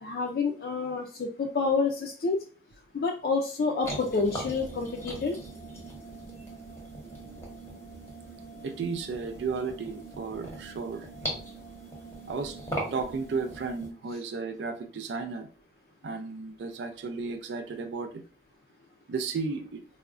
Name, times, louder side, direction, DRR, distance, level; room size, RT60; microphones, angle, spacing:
voice 1, 0.0-2.4 2.9-5.4, left 4 dB, 55° left, 0.3 m, -28 dB
sound 1, 3.8-13.9, right 1 dB, 15° left, 0.7 m, -40 dB
voice 2, 8.6-11.1 12.3-12.5 12.9-15.5 16.0-18.2 19.1-19.8, right 4 dB, 75° right, 0.3 m, -34 dB
3.4 x 2.1 x 2.4 m
head